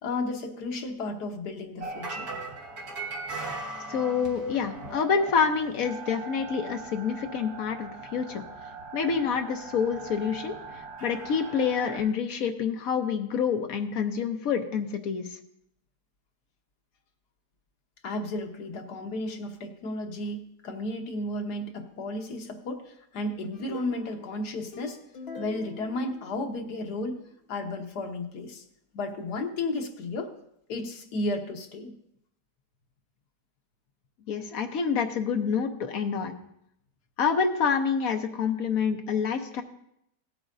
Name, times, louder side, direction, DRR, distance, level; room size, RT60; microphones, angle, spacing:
voice 1, 0.0-2.3 4.2-4.6 18.0-25.0 25.3-27.2 27.5-28.6 28.9-30.3 30.7-31.9, left 2 dB, 80° left, 3 dB, 1.7 m, -33 dB
sound 1, 1.8-12.0, right 3 dB, 70° right, 2.0 m, -39 dB
voice 2, 3.9-8.4 8.9-15.4 34.3-36.3 37.2-39.6, left 6 dB, 65° left, 6 dB, 1.2 m, -27 dB
sound 2, 23.5-26.9, left 4 dB, 45° left, 1.2 m, -45 dB
17.0 x 8.9 x 2.6 m, 0.75 s
omnidirectional pair, 1.7 m